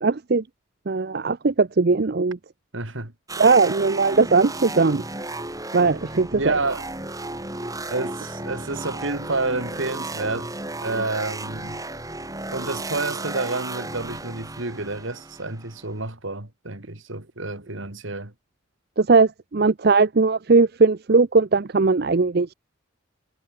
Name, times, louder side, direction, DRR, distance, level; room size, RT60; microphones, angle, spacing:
voice 1, 0.0-0.4 0.9-2.4 3.4-5.0 5.7-6.5 19.0-22.5, right 4 dB, 50° right, 0.6 m, -19 dB
voice 2, 2.7-3.1 6.3-6.9 7.9-10.5 10.8-11.8 12.5-18.3, right 3 dB, 75° right, 3.2 m, -29 dB
sound 1, 3.3-16.1, right 2 dB, 15° right, 5.4 m, -34 dB
head